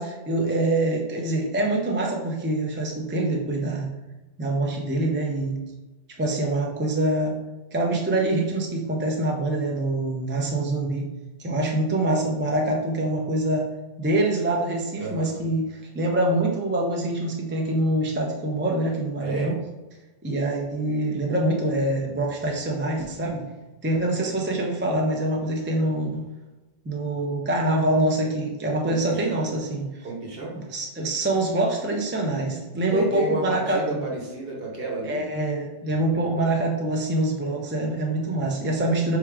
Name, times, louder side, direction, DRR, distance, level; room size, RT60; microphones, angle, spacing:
voice 1, 0.0-3.9 4.4-5.6 6.2-7.4 7.7-11.1 11.4-13.7 14.0-19.5 20.2-23.5 23.8-26.2 26.8-30.1 30.7-34.0 35.0-39.2, right 1 dB, 15° right, -1 dB, 0.4 m, -25 dB
voice 2, 15.0-15.5 19.2-19.6 28.8-29.5 30.0-30.5 32.9-35.2 35.9-36.4, right 2 dB, 55° right, -1 dB, 1.2 m, -31 dB
4.7 x 3.2 x 3.5 m, 1.1 s
omnidirectional pair, 1.2 m